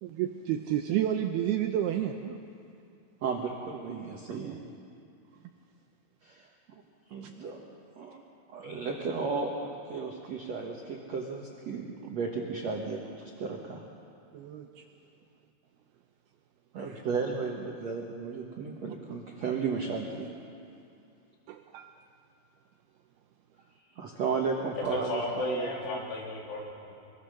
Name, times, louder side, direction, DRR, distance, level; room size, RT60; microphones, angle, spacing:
voice 1, 0.0-2.4 4.4-4.6 14.3-14.8 16.9-17.0 21.5-22.0, right 11 dB, 85° right, 5 dB, 2.3 m, -31 dB
voice 2, 3.2-4.6 6.2-6.8 7.1-7.7 8.0-8.2 8.5-13.8 16.7-20.3 23.9-26.0, right 5 dB, 70° right, 0 dB, 1.6 m, -34 dB
voice 3, 24.8-26.9, left 2 dB, 85° left, -2 dB, 6.0 m, -34 dB
25.0 x 22.5 x 6.6 m, 2.5 s
omnidirectional pair, 5.4 m